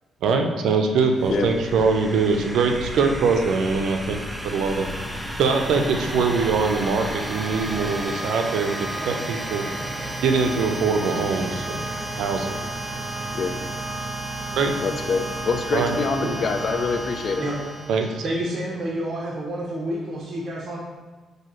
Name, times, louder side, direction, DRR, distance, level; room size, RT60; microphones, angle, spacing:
voice 1, 0.2-4.9 5.4-9.7 10.2-11.8 12.1-12.6 14.5-14.7 15.7-15.9 17.9-18.3, right 4 dB, 75° right, 5 dB, 0.5 m, -23 dB
sound 1, 1.0-18.6, right 1 dB, 10° right, 0.4 m, -32 dB
sound 2, 1.2-8.1, left 1 dB, 75° left, 1.3 m, -37 dB
voice 2, 14.8-17.4, left 5 dB, 55° left, 6 dB, 0.4 m, -25 dB
voice 3, 18.2-20.8, right 1 dB, 40° right, -4 dB, 0.7 m, -29 dB
6.1 x 2.7 x 3.0 m, 1.3 s
cardioid pair, 90°, 0 cm